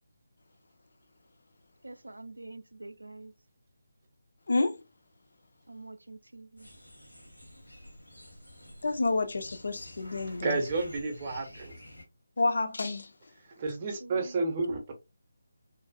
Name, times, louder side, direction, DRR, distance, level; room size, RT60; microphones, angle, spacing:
voice 1, 1.8-3.3 5.7-6.7 14.0-14.3, right 2 dB, 75° right, 0.3 m, -46 dB
voice 2, 4.5-4.8 8.8-10.6 12.4-13.1, left 3 dB, 55° left, 0.4 m, -29 dB
sound 1, 6.6-12.0, left 1 dB, 80° left, 1.0 m, -50 dB
voice 3, 10.4-11.7 13.6-14.9, right 3 dB, 30° right, 0.6 m, -31 dB
2.5 x 2.1 x 2.4 m
figure-of-eight pair, 155°, 0 cm